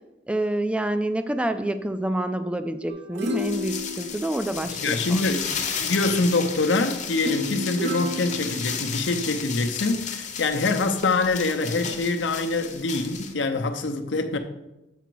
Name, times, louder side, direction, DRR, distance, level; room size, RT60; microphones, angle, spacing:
voice 1, 0.3-5.3, right 1 dB, 5° right, 0.3 m, -27 dB
sound 1, 2.9-5.2 7.2-9.2 9.8-9.9, left 2 dB, 70° right, 0.6 m, -33 dB
sound 2, 3.2-13.3, left 6 dB, 40° left, 0.8 m, -33 dB
voice 2, 4.8-14.4, left 3 dB, 80° left, 0.7 m, -25 dB
8.1 x 5.0 x 4.6 m
head